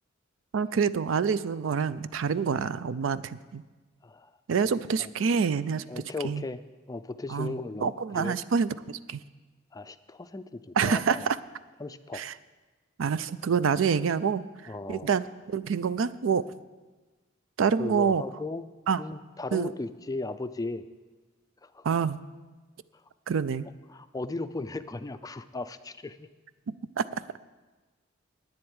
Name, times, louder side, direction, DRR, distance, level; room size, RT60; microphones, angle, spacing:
voice 1, 0.5-3.6 4.5-5.8 6.2-6.4 7.3-9.2 10.8-11.4 12.1-12.3 13.0-16.5 17.6-18.2 18.9-19.0 19.5-19.7 21.8-22.2 23.3-23.7 26.7-27.2, right 6 dB, 70° right, 16 dB, 0.4 m, -27 dB
voice 2, 4.0-4.3 5.0-5.1 5.9-6.6 6.9-8.4 9.7-11.3 11.8-12.2 14.7-15.1 17.8-18.6 19.0-20.9 21.6-21.9 23.9-26.3, left 3 dB, 20° left, 11 dB, 0.4 m, -36 dB
9.8 x 7.8 x 8.8 m, 1.3 s
head